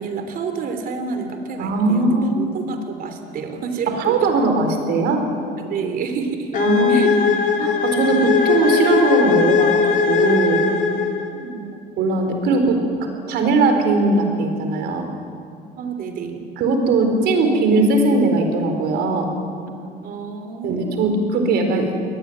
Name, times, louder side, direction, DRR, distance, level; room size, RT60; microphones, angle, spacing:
voice 1, 0.0-4.3 5.6-6.5 6.9-7.1 11.3-11.7 15.8-16.4 19.7-19.8 20.0-21.2, right 5 dB, 60° right, 7 dB, 3.2 m, -29 dB
voice 2, 1.6-2.7 3.9-5.2 6.5-10.7 12.0-12.8 13.3-15.1 16.6-19.3 20.6-21.9, right 3 dB, 80° right, 5 dB, 4.4 m, -19 dB
sound 1, 6.5-11.4, left 6 dB, 50° left, 2.5 m, -19 dB
23.0 x 19.0 x 9.5 m, 2.4 s
cardioid pair, 110°, 17 cm